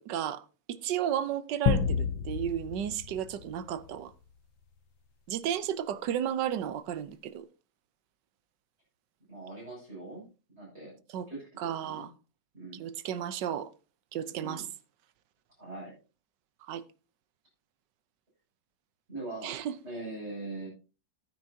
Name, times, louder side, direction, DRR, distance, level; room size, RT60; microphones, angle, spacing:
voice 1, 0.0-4.1 5.3-7.5 11.1-11.3 11.6-12.1 12.7-13.7 14.1-14.7 16.6-16.8 19.4-19.7, right 10 dB, 75° right, 1.4 m, -33 dB
sound 1, 1.7-4.2, left 7 dB, 85° left, 1.7 m, -30 dB
voice 2, 9.3-10.2 10.5-10.9 11.3-12.1 12.5-12.9 14.4-14.7 15.6-15.9 19.1-19.5 19.8-20.7, right 2 dB, 35° right, 7.7 m, -41 dB
14.0 x 9.6 x 2.8 m
omnidirectional pair, 2.0 m